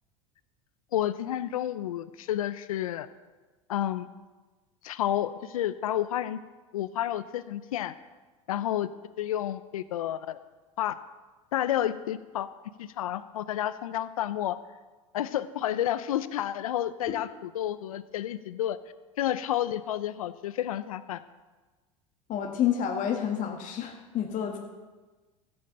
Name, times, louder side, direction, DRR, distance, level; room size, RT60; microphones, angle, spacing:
voice 1, 0.9-3.1 3.7-4.1 4.8-6.4 6.7-7.9 8.5-8.9 9.2-10.4 10.8-10.9 11.5-12.5 12.8-14.6 15.1-18.8 19.2-21.2, left 12 dB, 85° left, 14 dB, 0.6 m, -30 dB
voice 2, 22.3-24.6, left 9 dB, 45° left, 2 dB, 1.8 m, -29 dB
14.0 x 8.8 x 6.8 m, 1.3 s
hypercardioid pair, 90°, 18 cm